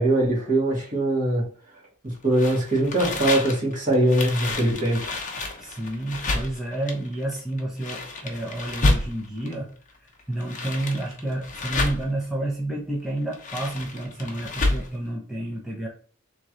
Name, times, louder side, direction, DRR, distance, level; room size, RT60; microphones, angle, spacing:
voice 1, 0.0-1.4 2.0-5.0, right 1 dB, 40° right, -4 dB, 2.1 m, -22 dB
sound 1, 2.3-9.5 10.2-12.2 13.2-15.0, left 2 dB, 35° left, 0.9 m, -29 dB
voice 2, 5.6-9.8 10.0-15.9, right 1 dB, ahead, -4 dB, 0.7 m, -30 dB
3.7 x 3.1 x 3.8 m, 0.43 s
head